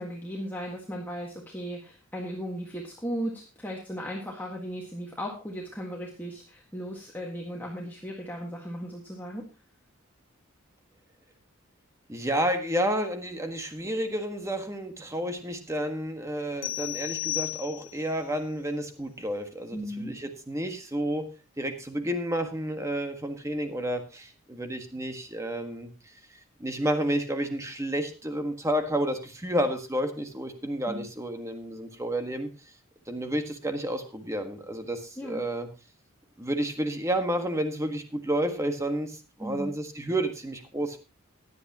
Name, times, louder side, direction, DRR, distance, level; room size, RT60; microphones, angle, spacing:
voice 1, 0.0-9.5 19.7-20.1 30.9-31.0 35.2-35.4 39.4-39.7, equal, 10° left, -2 dB, 1.6 m, -36 dB
voice 2, 12.1-21.3 21.6-25.9 26.6-32.5 33.1-35.7 36.4-41.0, right 1 dB, 15° right, 6 dB, 1.5 m, -30 dB
sound 1, 16.6-18.1, left 16 dB, 70° left, 2.0 m, -33 dB
16.5 x 11.0 x 2.9 m, 0.31 s
head